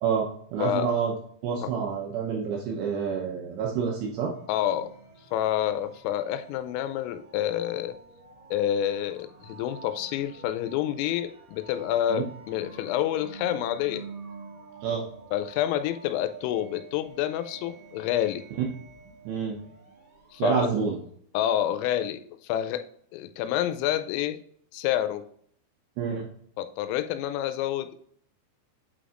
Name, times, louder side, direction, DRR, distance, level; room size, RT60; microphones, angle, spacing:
voice 1, 0.0-1.1 1.4-4.3 12.1-12.2 14.8-15.1 19.3-19.6 20.4-20.9 26.0-26.3, right 6 dB, 80° right, 0 dB, 2.5 m, -28 dB
sound 1, 3.6-21.1, right 5 dB, 35° right, 1.3 m, -48 dB
voice 2, 4.5-4.9 5.3-8.0 8.5-14.0 15.3-18.4 20.3-20.7 21.3-22.8 23.1-24.4 24.7-25.2 26.6-28.0, left 11 dB, 90° left, 10 dB, 3.2 m, -28 dB
8.3 x 5.1 x 2.5 m, 0.63 s
omnidirectional pair, 5.8 m